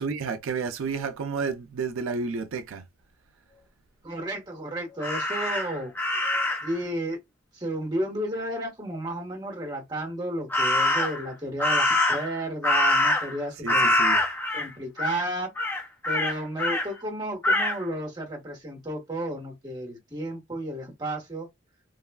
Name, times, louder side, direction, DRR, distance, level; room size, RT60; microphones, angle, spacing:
voice 1, 0.0-2.9 13.6-14.2, right 5 dB, 85° right, 0.4 m, -31 dB
voice 2, 4.0-5.9 6.6-7.2 7.5-14.0 14.5-15.5 16.0-21.5, right 1 dB, 20° right, 1.1 m, -32 dB
Crow, 5.0-6.8 10.5-11.3 11.6-13.4 13.7-14.7 15.0-15.2 15.6-16.9 17.4-17.8, left 1 dB, 10° left, 0.4 m, -24 dB
3.1 x 2.3 x 2.2 m
head